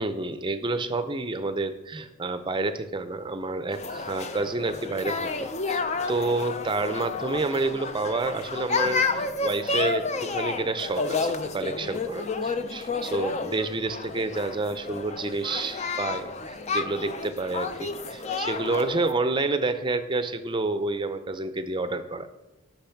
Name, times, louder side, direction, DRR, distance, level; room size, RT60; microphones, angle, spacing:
voice 1, 0.0-10.1 10.3-22.3, right 3 dB, 20° right, 10 dB, 0.6 m, -29 dB
sound 1, 3.7-19.1, left 4 dB, 30° left, 0.5 m, -31 dB
10.5 x 6.0 x 5.8 m, 1.0 s
head